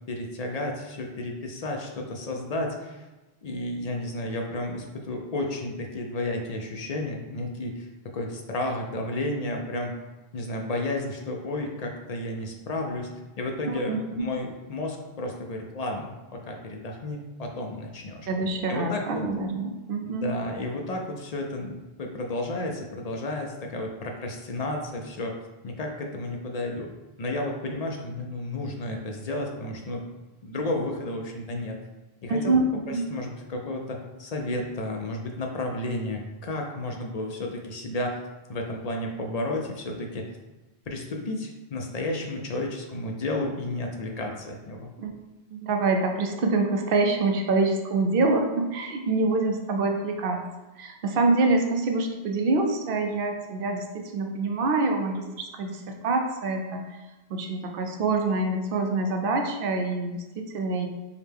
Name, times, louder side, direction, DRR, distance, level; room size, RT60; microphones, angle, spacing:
voice 1, 0.1-3.0 3.4-7.9 8.1-9.9 10.3-13.1 13.4-18.3 18.7-19.2 20.0-25.3 25.6-26.9 27.2-30.0 30.4-31.8 32.2-32.6 32.9-38.2 38.5-40.2 40.9-44.9, left 2 dB, 50° left, 1 dB, 0.5 m, -32 dB
voice 2, 13.6-14.2 18.3-20.3 32.3-32.7 32.9-33.1 45.0-45.1 45.5-50.4 50.8-57.0 57.3-60.9, right 3 dB, 65° right, 3 dB, 0.7 m, -26 dB
4.8 x 2.1 x 3.3 m, 1.1 s
omnidirectional pair, 1.1 m